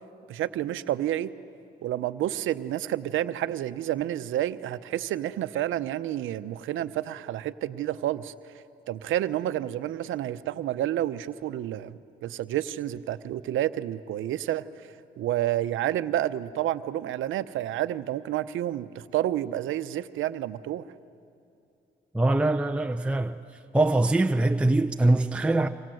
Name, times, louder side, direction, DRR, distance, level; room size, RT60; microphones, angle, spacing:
voice 1, 0.3-1.3 1.8-8.3 8.9-20.8, right 12 dB, 80° right, 0.8 m, -29 dB
voice 2, 22.1-23.4 23.7-25.7, right 2 dB, 5° right, 0.6 m, -23 dB
28.0 x 25.5 x 7.8 m
cardioid pair, 90°, 20 cm